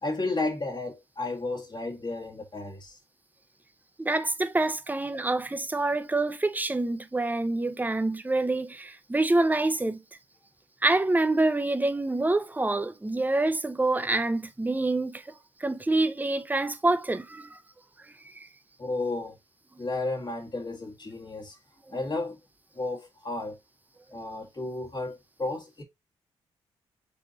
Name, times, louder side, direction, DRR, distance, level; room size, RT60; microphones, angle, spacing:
voice 1, 0.0-3.0 18.8-19.3 19.8-21.6 21.9-22.4 22.7-23.6 24.1-25.8, left 2 dB, 35° left, 1.7 m, -33 dB
voice 2, 4.0-10.0 10.8-15.2 15.6-17.6 18.3-18.5, right 2 dB, 15° right, 0.7 m, -26 dB
5.3 x 3.5 x 2.8 m
hypercardioid pair, 45°, 13 cm